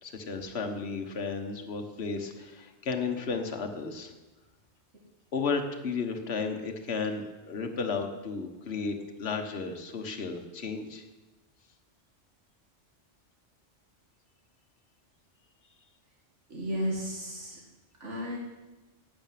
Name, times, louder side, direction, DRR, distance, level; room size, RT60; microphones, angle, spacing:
voice 1, 0.0-4.1 5.3-11.0, left 4 dB, 60° left, 4 dB, 1.5 m, -33 dB
voice 2, 16.5-17.6 18.0-18.4, equal, 75° right, -2 dB, 2.4 m, -33 dB
11.5 x 7.9 x 9.2 m, 1.1 s
omnidirectional pair, 1.2 m